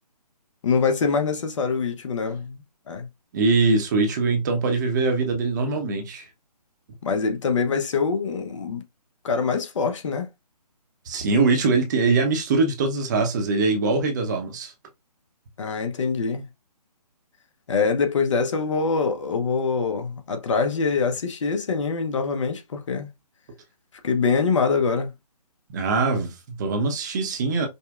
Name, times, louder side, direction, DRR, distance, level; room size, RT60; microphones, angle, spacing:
voice 1, 0.6-3.1 7.0-8.8 9.2-10.3 15.6-16.5 17.7-23.1 24.0-25.1, left 5 dB, 50° left, 0.8 m, -24 dB
voice 2, 3.3-6.2 11.1-14.7 25.7-27.7, right 3 dB, 30° right, 0.7 m, -22 dB
5.2 x 2.2 x 2.4 m
figure-of-eight pair, 150°, 21 cm